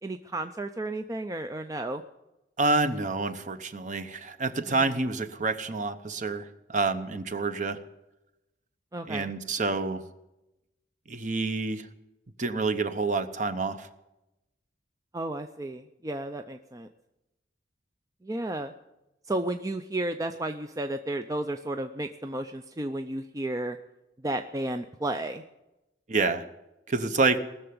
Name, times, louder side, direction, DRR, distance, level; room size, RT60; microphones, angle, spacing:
voice 1, 0.0-2.0 4.7-4.9 8.9-9.3 15.1-16.9 18.2-18.7 19.3-23.8 24.2-25.4, right 1 dB, 20° right, 7 dB, 0.5 m, -33 dB
voice 2, 2.6-7.8 9.1-10.0 11.1-11.9 12.4-13.9 26.1-26.4 26.9-27.4, right 3 dB, 40° right, 10 dB, 0.9 m, -28 dB
19.0 x 6.9 x 9.5 m, 0.95 s
head